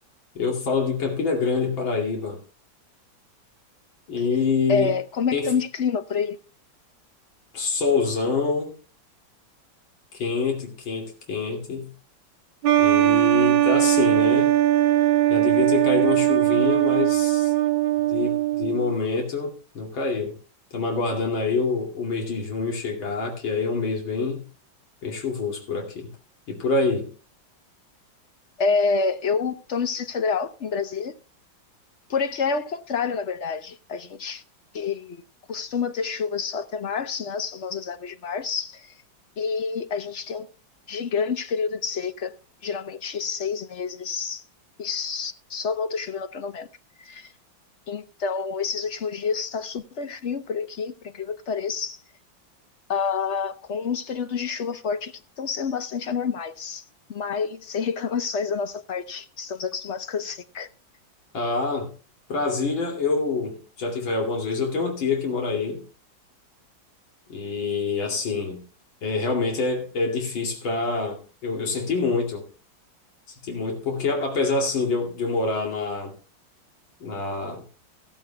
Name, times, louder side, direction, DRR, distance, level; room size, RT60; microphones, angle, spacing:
voice 1, 0.3-2.4 4.1-5.0 5.3-5.5 7.5-8.7 10.1-11.9 12.8-14.5 15.3-17.5 18.1-20.4 20.7-24.4 25.0-26.1 26.5-27.1 61.3-61.9 62.3-65.8 67.3-68.6 69.0-72.5 73.3-76.1 77.0-77.6, left 4 dB, 80° left, 3.3 m, -26 dB
voice 2, 4.7-6.4 28.6-31.1 32.1-34.4 34.7-35.2 35.5-38.9 39.4-40.5 40.9-42.3 42.6-44.4 44.8-46.7 47.0-47.3 47.9-52.0 52.9-56.8 57.1-60.7, left 5 dB, 50° left, 0.8 m, -28 dB
sound 1, 12.6-18.9, right 14 dB, 80° right, 1.6 m, -20 dB
14.5 x 14.5 x 2.2 m
omnidirectional pair, 2.1 m